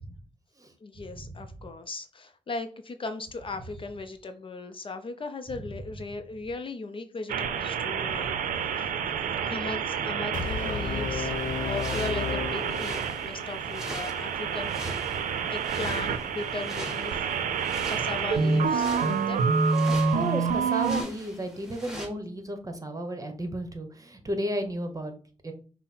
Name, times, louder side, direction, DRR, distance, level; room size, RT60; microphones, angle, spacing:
voice 1, 0.8-8.9 9.4-11.3 11.6-14.7 15.5-17.3 17.9-19.4, left 3 dB, 40° left, 8 dB, 0.6 m, -37 dB
sound 1, 7.3-21.0, right 5 dB, 75° right, 0.5 m, -28 dB
Brass instrument, 10.3-13.4, left 6 dB, 75° left, 0.9 m, -33 dB
sound 2, 11.4-22.1, right 1 dB, 5° right, 1.6 m, -43 dB
voice 2, 19.9-25.1 25.4-25.5, right 1 dB, 25° right, 7 dB, 1.0 m, -33 dB
5.5 x 2.1 x 4.2 m, 0.41 s
supercardioid pair, 60°, 14 cm